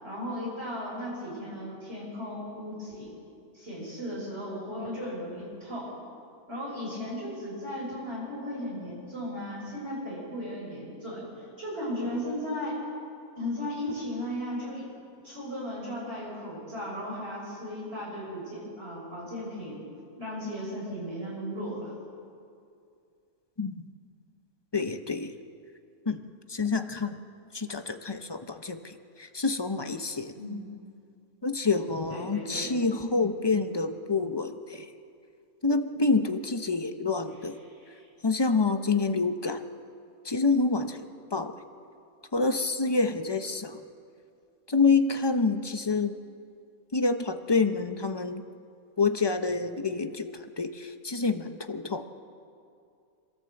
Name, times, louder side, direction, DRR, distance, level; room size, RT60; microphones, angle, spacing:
voice 1, 0.0-3.1 3.5-5.9 6.5-11.2 11.6-12.8 13.4-14.8 15.2-19.8 20.2-21.9 30.4-30.6 32.1-32.8 37.7-38.0, equal, 40° right, -5 dB, 7.2 m, -36 dB
voice 2, 24.7-25.3 26.1-26.2 26.5-27.2 27.5-30.3 31.4-34.9 35.6-37.6 38.2-39.6 40.2-41.0 41.3-41.5 42.3-43.8 44.7-46.2 46.9-48.4 49.0-50.3 50.6-52.0, left 4 dB, 25° left, 8 dB, 0.6 m, -27 dB
25.5 x 13.5 x 7.8 m, 2.4 s
omnidirectional pair, 1.6 m